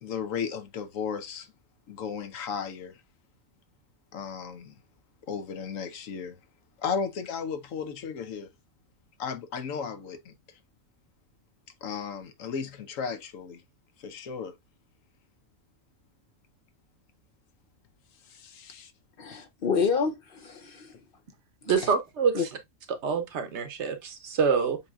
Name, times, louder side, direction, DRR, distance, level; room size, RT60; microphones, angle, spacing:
voice 1, 0.0-1.5 1.9-3.0 4.1-4.7 5.3-6.4 6.8-8.5 9.2-10.3 11.8-13.6 14.0-14.5 18.3-18.9 19.3-19.4, left 6 dB, 80° left, 1.2 m, -35 dB
voice 2, 19.2-21.0 21.6-21.9 22.3-22.4, left 5 dB, 55° left, 0.7 m, -29 dB
voice 3, 21.7-22.4 22.9-24.8, right 6 dB, 65° right, 1.0 m, -26 dB
7.0 x 2.8 x 2.3 m
omnidirectional pair, 1.3 m